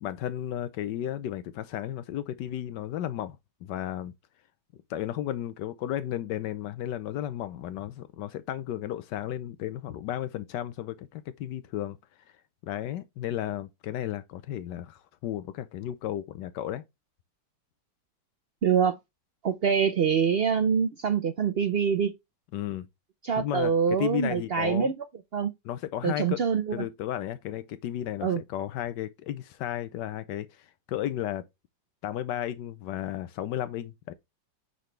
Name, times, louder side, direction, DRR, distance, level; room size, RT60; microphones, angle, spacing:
voice 1, 0.0-4.1 4.9-12.0 12.6-16.8 22.5-22.9 23.4-24.9 25.6-26.4 26.7-31.5 32.0-34.1, left 11 dB, 85° left, 1.3 m, -34 dB
voice 2, 18.6-19.0 19.4-22.1 23.2-24.9 25.3-25.5 26.0-26.8 28.2-28.4, right 7 dB, 75° right, 0.5 m, -25 dB
9.6 x 3.9 x 3.2 m
omnidirectional pair, 1.8 m